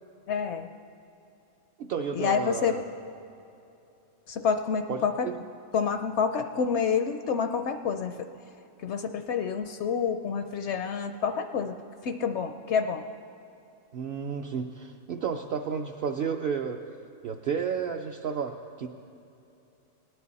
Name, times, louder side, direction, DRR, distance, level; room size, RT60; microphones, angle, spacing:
voice 1, 0.3-0.7 2.1-2.7 4.3-5.3 5.7-8.1 8.8-11.7 12.0-13.0, left 6 dB, 65° left, 7 dB, 0.7 m, -28 dB
voice 2, 1.8-2.8 4.9-5.3 13.9-16.8 17.2-18.9, right 6 dB, 65° right, 2 dB, 0.6 m, -32 dB
18.5 x 10.0 x 4.1 m, 2.8 s
omnidirectional pair, 1.5 m